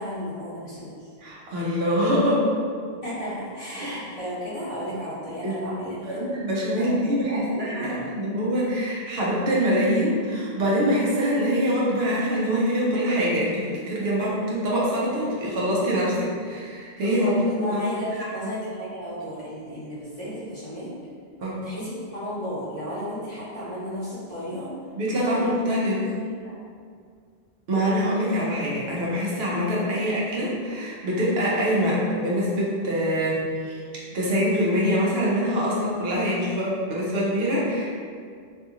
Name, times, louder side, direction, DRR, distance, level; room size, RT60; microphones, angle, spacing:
voice 1, 0.0-1.1 3.0-6.2 6.7-7.0 7.3-8.1 17.0-20.9 21.6-24.7 25.3-25.4 25.8-25.9 26.4-26.5, equal, 35° left, -11 dB, 1.0 m, -33 dB
voice 2, 1.2-2.5 3.8-3.9 5.4-5.6 6.0-17.3 17.6-17.8 21.4-21.6 25.0-26.0 27.7-33.8 34.1-37.9, equal, 75° right, -6 dB, 0.9 m, -24 dB
2.6 x 2.3 x 2.8 m, 2.1 s
omnidirectional pair, 1.0 m